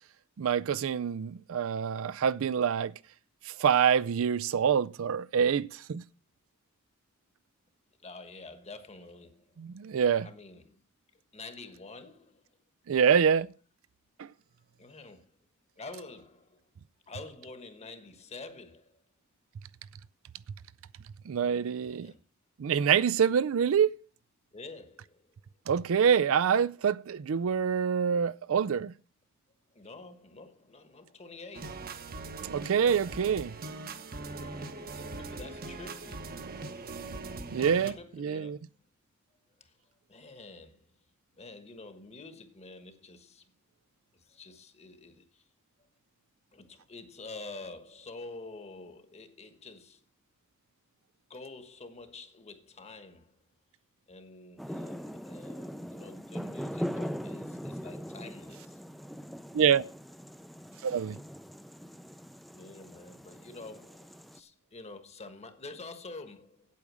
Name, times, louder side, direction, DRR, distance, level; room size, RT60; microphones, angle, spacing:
voice 1, 0.4-2.9 3.5-6.0 9.6-10.3 12.9-13.5 14.2-14.3 21.3-22.1 22.6-23.9 25.7-28.9 32.5-33.5 37.5-38.6 59.5-59.8 60.8-61.2, right 7 dB, 65° right, 0.4 m, -26 dB
voice 2, 8.0-9.6 10.2-10.8 11.3-12.4 12.9-13.2 14.8-15.3 15.8-16.6 17.1-19.0 21.4-22.2 24.5-25.2 29.7-32.0 32.8-33.2 34.5-36.5 37.6-38.7 39.6-39.7 40.1-40.9 41.4-43.4 44.1-45.4 46.5-50.0 51.3-53.3 54.1-58.8 62.5-66.7, left 3 dB, 30° left, 1.3 m, -48 dB
sound 1, 31.5-37.9, right 3 dB, 45° right, 0.9 m, -41 dB
sound 2, 54.6-64.4, equal, ahead, 0.5 m, -41 dB
8.5 x 8.5 x 6.2 m
head